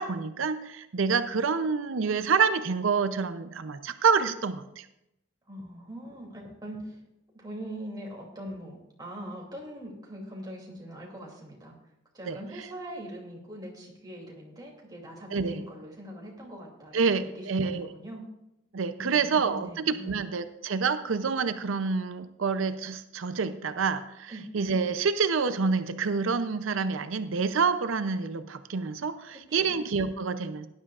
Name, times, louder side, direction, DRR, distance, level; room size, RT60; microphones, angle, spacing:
voice 1, 0.0-4.9 12.3-12.4 15.3-15.6 16.9-17.9 18.7-30.7, right 5 dB, 75° right, 11 dB, 0.6 m, -27 dB
voice 2, 5.5-7.0 7.3-11.7 12.1-18.2 19.0-20.2 24.3-24.5 29.6-29.8, equal, 20° right, -2 dB, 2.7 m, -42 dB
17.5 x 11.0 x 2.4 m, 0.86 s
head